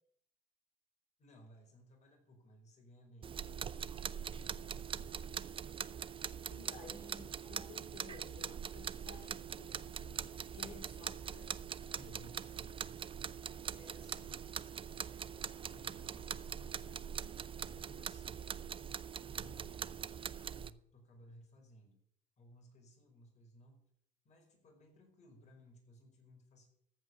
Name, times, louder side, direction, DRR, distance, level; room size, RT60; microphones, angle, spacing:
voice 1, 1.2-5.1 11.9-12.9 13.4-18.5 19.2-22.0 22.4-23.9 24.2-26.7, equal, 45° left, 1 dB, 4.9 m, -61 dB
sound 1, 3.2-20.7, right 7 dB, 30° right, 0.5 m, -43 dB
voice 2, 6.5-11.5 12.1-12.3 19.3-19.6, left 4 dB, 70° left, 0 dB, 3.6 m, -55 dB
14.5 x 5.3 x 9.6 m, 0.68 s
cardioid pair, 110°, 17 cm